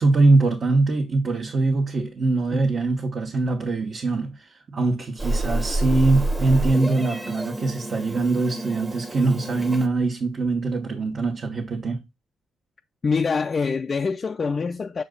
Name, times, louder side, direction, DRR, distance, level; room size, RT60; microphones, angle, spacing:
voice 1, 0.0-12.0, right 3 dB, 45° right, 1.3 m, -22 dB
Meow, 5.2-9.9, right 1 dB, 15° right, 1.1 m, -28 dB
voice 2, 13.0-15.0, left 5 dB, 40° left, 0.4 m, -24 dB
6.6 x 4.3 x 3.8 m
cardioid pair, 90°, 0 cm